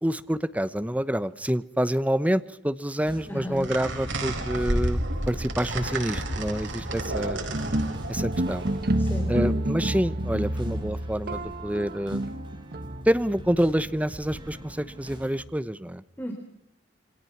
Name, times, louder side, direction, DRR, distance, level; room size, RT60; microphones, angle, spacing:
voice 1, 0.0-5.0 5.3-7.4 8.1-8.7 9.3-12.2 13.1-16.0, equal, 10° right, 12 dB, 0.9 m, -27 dB
sound 1, 3.0-15.4, equal, 25° right, 5.4 m, -43 dB
voice 2, 3.3-3.7 9.0-9.6 16.2-16.3, equal, 10° left, 3 dB, 3.5 m, -34 dB
sound 2, 3.5-9.6, right 1 dB, 85° right, 4.3 m, -31 dB
sound 3, 7.5-13.0, right 1 dB, 55° right, 1.2 m, -29 dB
27.5 x 24.5 x 5.9 m, 0.81 s
head